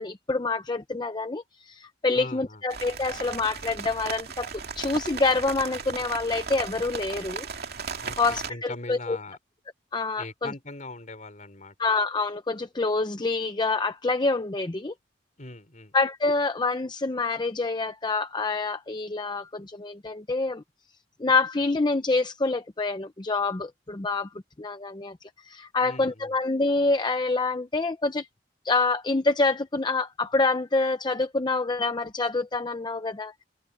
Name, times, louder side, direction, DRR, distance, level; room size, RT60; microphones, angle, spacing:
voice 1, 0.0-4.5 4.8-7.5 8.2-9.2 9.9-10.5 11.8-14.9 15.9-20.6 21.2-24.3 24.6-25.2 25.4-28.3 28.6-33.3, left 3 dB, 25° left, 0.7 m, -26 dB
voice 2, 2.1-2.6 8.0-9.4 10.2-11.7 15.4-15.9 25.8-26.4, left 2 dB, 45° left, 5.6 m, -41 dB
sound 1, 2.7-8.5, right 5 dB, 60° right, 2.5 m, -36 dB
head